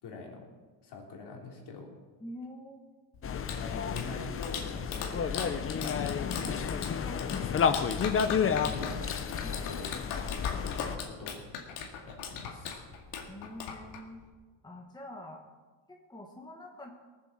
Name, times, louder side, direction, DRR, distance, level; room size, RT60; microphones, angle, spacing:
voice 1, 0.0-0.5 0.8-1.9 3.3-5.6 5.8-6.6 7.2-7.9 8.4-9.0 9.4-12.8, left 4 dB, 50° left, 0 dB, 3.5 m, -44 dB
voice 2, 2.2-2.9 7.0-7.3 9.4-9.6 13.3-14.2 14.6-15.4 15.9-16.9, left 1 dB, 10° left, 0 dB, 1.4 m, -45 dB
Clapping, 3.1-14.3, left 6 dB, 80° left, 2.1 m, -40 dB
sound 1, 3.2-11.0, left 7 dB, 25° left, 0.6 m, -31 dB
19.0 x 7.7 x 7.4 m, 1.4 s
cardioid pair, 140°, 49 cm